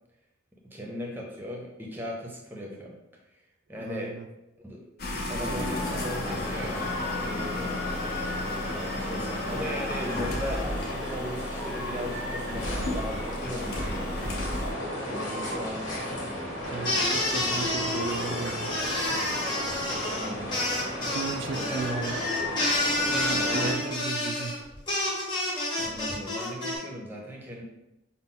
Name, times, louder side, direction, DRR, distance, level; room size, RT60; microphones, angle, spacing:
voice 1, 0.7-2.9 3.7-4.1 4.6-4.8 5.3-6.9 7.2-7.8 8.9-14.5 15.0-16.0 20.1-20.5 21.5-22.1 23.3-23.9 25.8-27.6, equal, 10° right, 0 dB, 0.6 m, -37 dB
voice 2, 3.8-4.3 16.7-18.7 21.0-22.2 22.9-24.6, right 4 dB, 70° right, 5 dB, 0.3 m, -35 dB
sound 1, 5.0-14.7, left 2 dB, 50° left, 0.7 m, -34 dB
sound 2, 5.3-23.7, left 1 dB, 75° left, 1.3 m, -34 dB
sound 3, 16.8-26.8, left 1 dB, 20° left, 1.0 m, -29 dB
5.6 x 2.1 x 3.8 m, 0.93 s
head